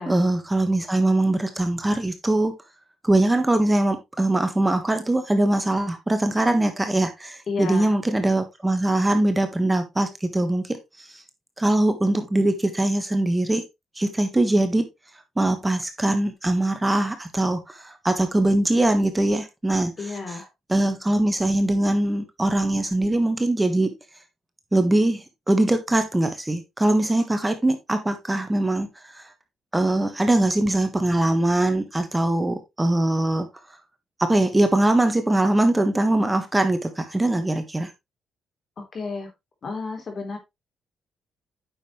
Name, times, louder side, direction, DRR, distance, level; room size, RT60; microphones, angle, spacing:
voice 1, 0.1-2.5 3.0-11.2 11.6-13.6 13.9-14.9 15.4-20.4 20.7-23.9 24.7-29.3 29.7-33.5 34.2-37.9, right 1 dB, 15° right, 8 dB, 1.4 m, -22 dB
voice 2, 7.5-7.9 20.0-20.5 38.8-39.3 39.6-40.4, left 4 dB, 45° left, 5 dB, 3.6 m, -31 dB
9.2 x 6.7 x 3.2 m, 0.21 s
cardioid pair, 90°, 0 cm